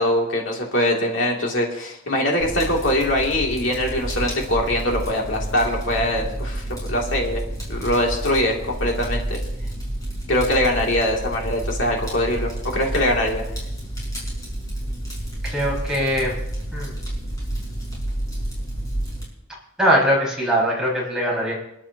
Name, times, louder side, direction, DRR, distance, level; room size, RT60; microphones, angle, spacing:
voice 1, 0.0-7.4 7.7-9.4 10.3-13.4, left 1 dB, 65° left, -1 dB, 2.8 m, -22 dB
Fire, 2.4-19.2, right 1 dB, 20° left, 5.8 m, -30 dB
voice 2, 15.4-16.4 16.7-16.9 19.8-21.5, equal, 5° right, -5 dB, 5.5 m, -21 dB
28.5 x 11.5 x 2.9 m, 0.84 s
head